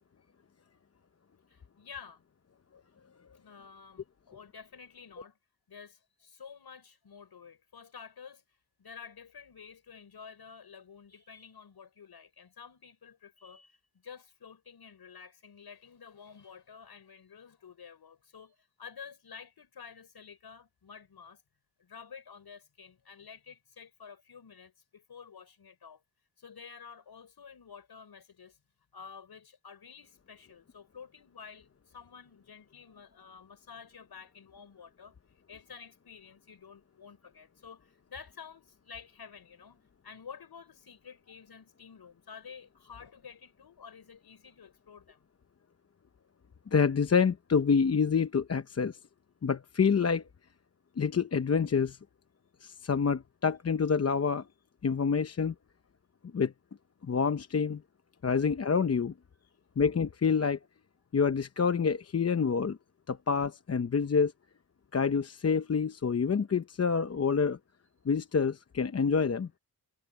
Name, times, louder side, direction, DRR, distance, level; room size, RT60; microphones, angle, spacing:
voice 1, 1.5-2.2 3.3-5.4 5.7-21.4 21.8-26.0 26.4-28.6 28.9-45.2, left 6 dB, 60° left, 5.4 m, -50 dB
voice 2, 46.7-49.0 49.4-50.2 51.0-52.0 52.6-54.4 54.8-55.5 56.3-56.5 57.0-57.8 58.2-59.1 59.8-60.6 61.1-62.8 63.1-64.3 64.9-67.6 68.1-69.5, left 6 dB, 35° left, 0.8 m, -27 dB
wide cardioid pair, 110°, 43 cm